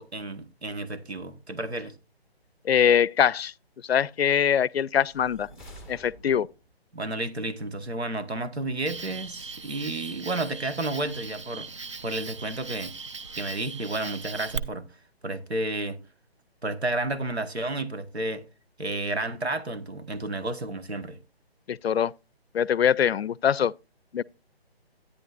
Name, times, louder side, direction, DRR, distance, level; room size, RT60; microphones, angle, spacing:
voice 1, 0.0-1.9 6.9-11.7 12.0-12.9 13.4-14.8 15.2-16.0 16.6-18.4 18.8-21.2, right 2 dB, 90° right, 1.4 m, -31 dB
voice 2, 2.6-3.5 3.8-5.5 5.9-6.5 21.7-22.1 22.5-23.7 24.1-24.2, left 8 dB, 75° left, 0.5 m, -23 dB
sound 1, 5.0-6.8, right 1 dB, ahead, 0.7 m, -48 dB
Cricket, 8.9-14.6, right 4 dB, 30° right, 0.4 m, -39 dB
12.5 x 9.9 x 2.4 m
figure-of-eight pair, 150°, 31 cm